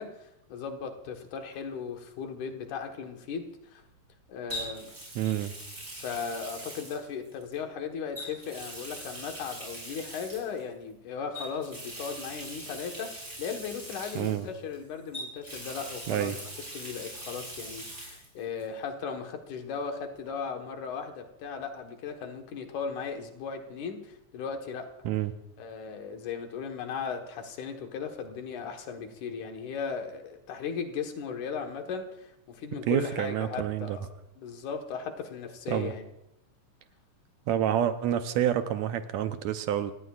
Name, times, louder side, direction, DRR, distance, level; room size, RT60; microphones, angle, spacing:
voice 1, 0.0-3.8 4.3-4.9 6.0-16.4 16.7-24.9 25.6-34.1 34.4-36.0, left 6 dB, 80° left, 4 dB, 2.9 m, -37 dB
Water tap faucet, 1.5-1.8 4.5-7.6 8.1-10.6 11.3-14.8 15.1-18.3 18.6-18.7 20.3-20.4, equal, 25° right, 6.5 m, -42 dB
voice 2, 5.2-5.5 14.2-14.5 16.1-16.4 25.1-25.3 32.9-34.0 35.7-35.9 37.5-39.9, right 10 dB, 75° right, 9 dB, 1.9 m, -28 dB
28.5 x 18.0 x 2.4 m, 0.85 s
omnidirectional pair, 3.5 m